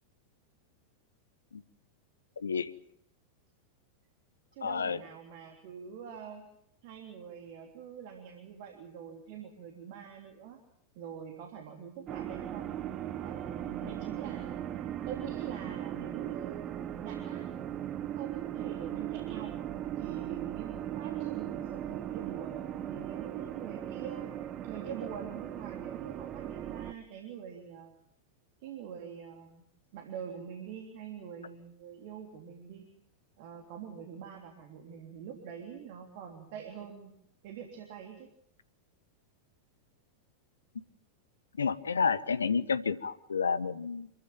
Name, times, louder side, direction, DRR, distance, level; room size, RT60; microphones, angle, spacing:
voice 1, 2.4-2.7 4.6-5.0 13.8-13.9 41.6-44.1, left 5 dB, 70° left, 15 dB, 1.2 m, -30 dB
voice 2, 4.5-6.4 6.8-10.6 10.9-12.8 13.2-14.7 15.0-16.6 17.0-17.5 18.2-19.5 19.9-24.3 24.6-27.9 28.6-29.6 29.9-32.9 33.4-37.1 37.4-38.3, right 8 dB, 50° right, 4 dB, 3.2 m, -45 dB
sound 1, 12.1-26.9, right 11 dB, 30° right, 1.3 m, -38 dB
27.0 x 14.5 x 9.2 m, 0.73 s
figure-of-eight pair, 90°, 0 cm